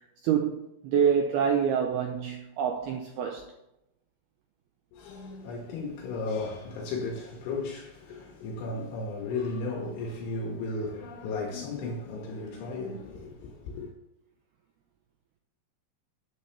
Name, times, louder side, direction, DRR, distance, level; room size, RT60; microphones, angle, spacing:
voice 1, 0.2-3.5, right 7 dB, 85° right, 2.2 m, -26 dB
voice 2, 4.9-13.9, left 3 dB, 75° left, 3.9 m, -35 dB
13.5 x 10.0 x 3.5 m
omnidirectional pair, 5.7 m